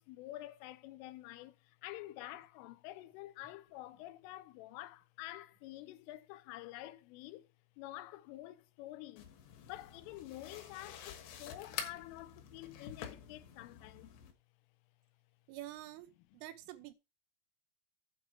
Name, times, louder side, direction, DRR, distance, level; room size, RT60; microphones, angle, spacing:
voice 1, 0.0-7.5 7.8-9.3 9.7-14.1, left 16 dB, 85° left, 3.3 m, -48 dB
sound 1, 9.2-14.3, left 8 dB, 70° left, 3.2 m, -48 dB
voice 2, 15.5-16.1 16.3-16.9, right 14 dB, 85° right, 3.4 m, -47 dB
9.4 x 4.4 x 7.6 m
omnidirectional pair, 5.7 m